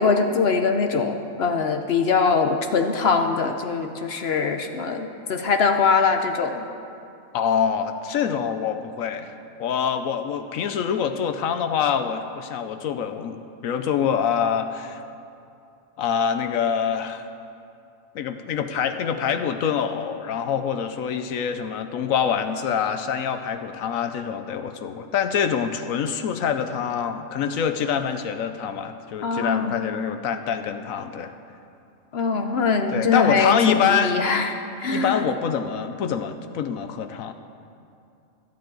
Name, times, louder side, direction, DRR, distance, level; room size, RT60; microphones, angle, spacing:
voice 1, 0.0-6.6 29.2-29.7 32.1-35.2, left 4 dB, 55° left, 6 dB, 0.9 m, -22 dB
voice 2, 7.3-9.3 9.6-15.0 16.0-17.3 18.1-31.3 32.9-34.2 34.9-37.3, left 7 dB, 80° left, 8 dB, 1.1 m, -25 dB
25.0 x 8.8 x 3.9 m, 2.5 s
omnidirectional pair, 1.4 m